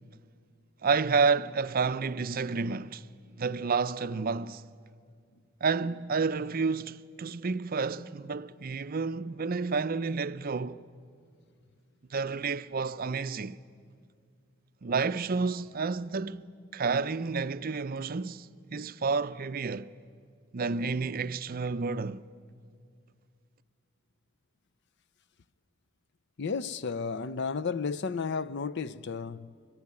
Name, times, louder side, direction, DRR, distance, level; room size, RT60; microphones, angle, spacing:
voice 1, 0.8-3.1 3.4-4.7 5.6-10.8 12.1-13.6 14.8-16.5 16.7-19.9 20.5-22.2, right 4 dB, 45° right, 0.5 m, -30 dB
voice 2, 26.4-29.5, left 5 dB, 55° left, 0.6 m, -33 dB
22.5 x 22.0 x 9.6 m
head